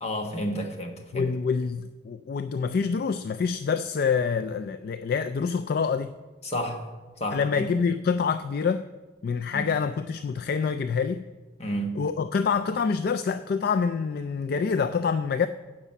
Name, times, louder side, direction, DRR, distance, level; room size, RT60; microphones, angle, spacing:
voice 1, 0.0-1.3 6.4-6.9 7.2-7.7 9.5-9.7 11.6-12.0, equal, 35° left, 4 dB, 1.2 m, -31 dB
voice 2, 1.1-6.1 7.3-8.9 9.2-11.3 12.0-15.5, left 5 dB, 55° left, 10 dB, 0.3 m, -26 dB
9.8 x 6.1 x 7.3 m, 1.3 s
head